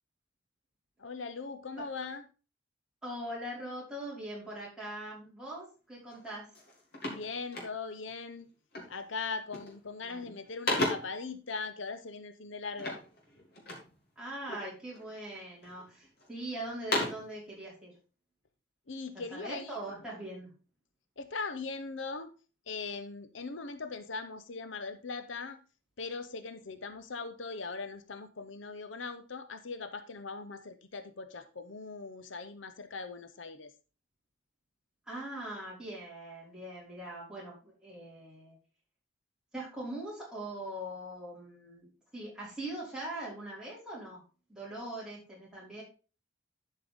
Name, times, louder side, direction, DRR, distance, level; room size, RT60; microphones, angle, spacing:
voice 1, 1.0-2.2 7.1-8.5 8.9-13.0 18.9-19.8 21.2-22.3 22.7-25.6 26.0-33.7, left 4 dB, 75° left, 10 dB, 0.8 m, -40 dB
voice 2, 3.0-6.4 10.0-10.4 14.2-17.9 19.1-20.5 35.1-38.5 39.5-44.2 44.5-45.8, right 1 dB, 5° right, -7 dB, 4.8 m, -41 dB
sound 1, 6.1-6.3 6.5-8.1 8.7-9.1 9.4-9.9 10.2-11.3 12.8-14.0 14.5-15.1 15.6-16.3 16.7-17.4, left 1 dB, 55° left, 3.0 m, -35 dB
11.5 x 5.6 x 3.6 m, 0.34 s
head